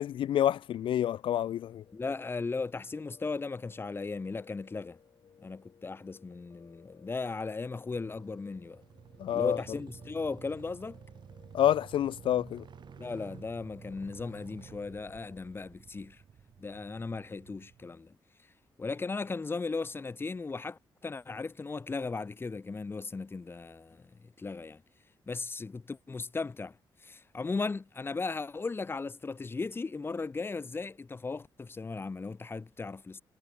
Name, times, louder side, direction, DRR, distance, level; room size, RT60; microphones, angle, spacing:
voice 1, 0.0-1.8 9.2-9.6 11.5-12.6, left 11 dB, 75° left, 0.4 m, -28 dB
Piano, 1.8-15.5, left 7 dB, 55° left, 3.4 m, -61 dB
voice 2, 1.9-5.0 5.4-8.8 9.3-11.0 13.0-16.2 16.6-18.2 18.8-24.8 25.3-26.8 27.0-33.2, left 4 dB, 25° left, 0.9 m, -37 dB
sound 1, 7.9-17.9, right 7 dB, 60° right, 2.9 m, -52 dB
cardioid pair, 110°, 9 cm